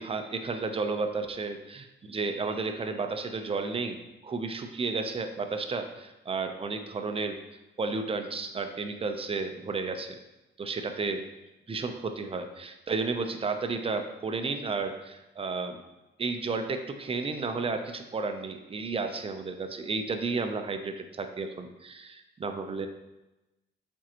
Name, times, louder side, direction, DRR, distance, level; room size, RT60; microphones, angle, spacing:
voice 1, 0.0-4.0 4.2-7.4 7.8-10.2 10.6-11.2 11.7-15.8 16.2-22.9, right 4 dB, 30° right, 6 dB, 0.6 m, -32 dB
7.5 x 4.5 x 2.9 m, 1.0 s
cardioid pair, 110°, 20 cm